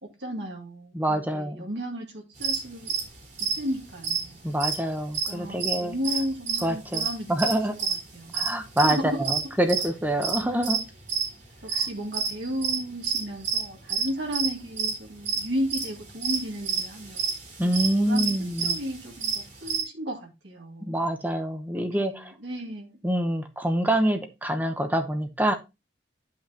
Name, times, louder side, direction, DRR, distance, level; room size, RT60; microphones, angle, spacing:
voice 1, 0.0-2.9 3.4-4.4 5.3-7.3 7.9-8.5 8.8-9.2 10.5-10.6 11.6-17.3 17.9-18.3 18.6-21.0 21.7-23.0, equal, 70° right, 2.1 m, -34 dB
voice 2, 0.9-1.7 4.4-5.9 6.6-7.8 8.3-10.8 17.6-18.8 20.9-22.3 23.0-25.5, right 1 dB, 10° right, 0.8 m, -26 dB
sound 1, 2.4-5.8 6.0-11.3 11.7-14.1 14.3-14.5 14.8-14.9 15.3-19.8, right 6 dB, 40° right, 3.8 m, -29 dB
9.8 x 5.8 x 2.8 m
head